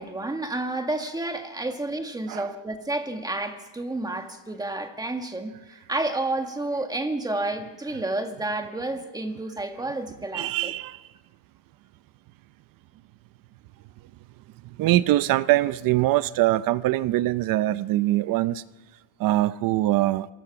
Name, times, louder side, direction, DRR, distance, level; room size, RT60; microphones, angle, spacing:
voice 1, 0.0-10.7, right 2 dB, 10° right, 1.7 m, -30 dB
voice 2, 10.3-11.1 14.6-18.6 19.2-20.3, right 16 dB, 55° right, 0.6 m, -23 dB
26.5 x 18.0 x 5.9 m
cardioid pair, 145°, 41 cm